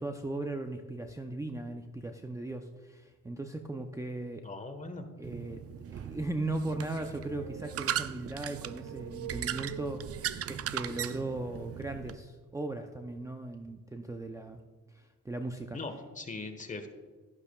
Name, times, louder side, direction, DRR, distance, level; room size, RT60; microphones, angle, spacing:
voice 1, 0.0-4.5 5.2-14.6 14.9-15.8, right 2 dB, 10° right, 5 dB, 0.6 m, -38 dB
voice 2, 4.4-5.1 15.7-16.9, left 3 dB, 25° left, 7 dB, 1.3 m, -40 dB
sound 1, 5.2-12.1, right 10 dB, 50° right, 0.5 m, -38 dB
12.0 x 11.5 x 2.4 m, 1.4 s
cardioid pair, 90°, 30 cm